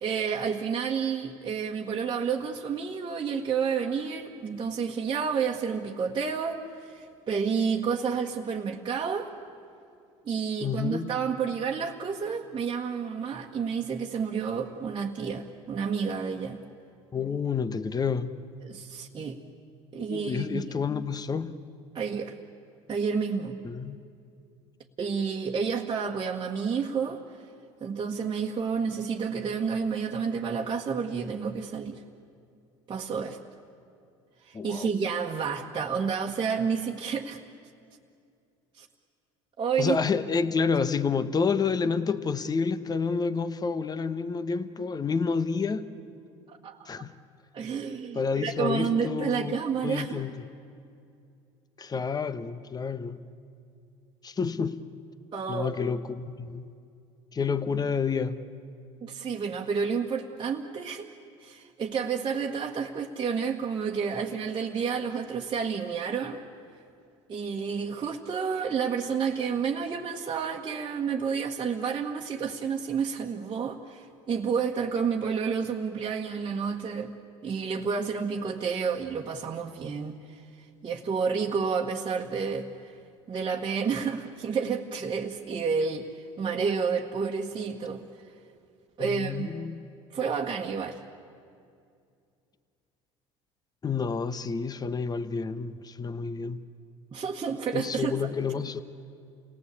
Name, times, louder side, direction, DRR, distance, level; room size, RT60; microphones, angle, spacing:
voice 1, 0.0-9.3 10.2-16.6 18.6-19.4 19.9-20.8 21.9-22.3 22.9-23.6 25.0-27.2 27.8-32.0 32.9-33.4 34.5-37.4 38.8-38.9 39.6-40.0 46.5-47.0 47.5-50.2 55.3-55.7 59.0-61.1 61.4-66.4 67.3-77.1 77.4-80.4 80.8-82.9 83.3-86.1 86.4-88.1 89.0-89.5 90.1-91.0 97.1-98.3, right 6 dB, 35° right, 1.5 m, -30 dB
voice 2, 10.6-11.1 17.1-18.3 20.0-21.5 23.6-24.0 34.5-34.9 39.8-45.9 46.9-47.1 48.1-49.6 49.8-50.3 51.8-53.2 54.2-54.8 55.5-56.6 57.3-58.4 89.0-89.8 93.8-96.6 97.7-98.8, left 5 dB, 25° left, 1.1 m, -29 dB
28.5 x 18.5 x 8.4 m
hypercardioid pair, 75°, 14 cm